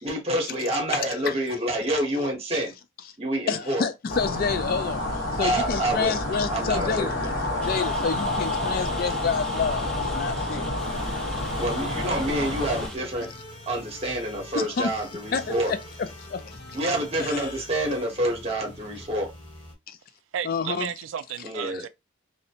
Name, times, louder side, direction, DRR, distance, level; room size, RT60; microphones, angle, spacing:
voice 1, 0.0-2.7 3.2-3.8 5.3-7.6 11.6-13.3 13.7-15.7 16.7-19.3 21.4-21.9, right 1 dB, 30° right, 0.9 m, -28 dB
voice 2, 0.9-1.4 3.5-7.1 7.6-10.7 14.5-14.9 15.3-16.8 17.2-17.5 19.9-20.0 20.4-20.9 21.7-21.8, left 5 dB, 50° left, 0.3 m, -29 dB
sound 1, 4.1-12.9, left 1 dB, 75° left, 1.1 m, -29 dB
Rain, 7.6-13.0, equal, 5° left, 0.6 m, -41 dB
sound 2, 10.8-19.8, left 1 dB, 30° left, 0.9 m, -44 dB
voice 3, 20.3-21.9, right 9 dB, 80° right, 0.3 m, -33 dB
2.7 x 2.1 x 2.7 m
head